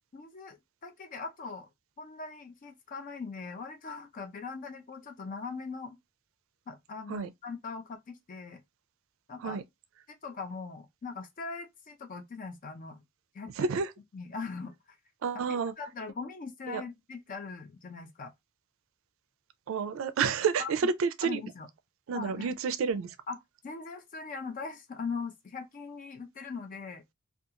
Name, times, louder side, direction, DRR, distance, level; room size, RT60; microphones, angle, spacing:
voice 1, 0.1-0.6 0.8-1.7 2.0-6.0 6.7-8.6 9.3-9.6 10.2-13.0 13.3-13.7 14.1-14.7 15.3-18.3 20.6-20.7 21.2-21.7 22.1-22.5 23.3-23.4 23.6-27.0, left 4 dB, 40° left, 0.4 m, -40 dB
voice 2, 13.6-13.9 15.2-15.7 16.7-16.8 19.7-21.4 22.1-23.2, right 5 dB, 70° right, 0.4 m, -30 dB
2.4 x 2.3 x 2.7 m
head